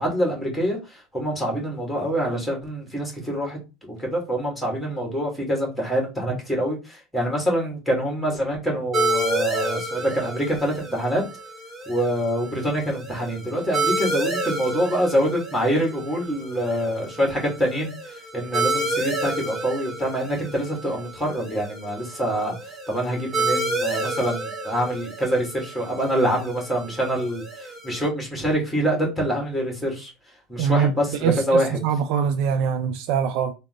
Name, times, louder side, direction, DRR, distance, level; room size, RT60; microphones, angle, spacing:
voice 1, 0.0-3.6 3.9-11.2 11.9-22.5 22.9-30.1 30.5-31.8, equal, ahead, 1.7 m, -25 dB
sound 1, 8.9-28.1, right 2 dB, 30° right, 1.5 m, -30 dB
voice 2, 30.6-30.9 31.2-33.5, right 7 dB, 65° right, 0.4 m, -23 dB
3.7 x 2.0 x 3.6 m
supercardioid pair, 115°, 0 cm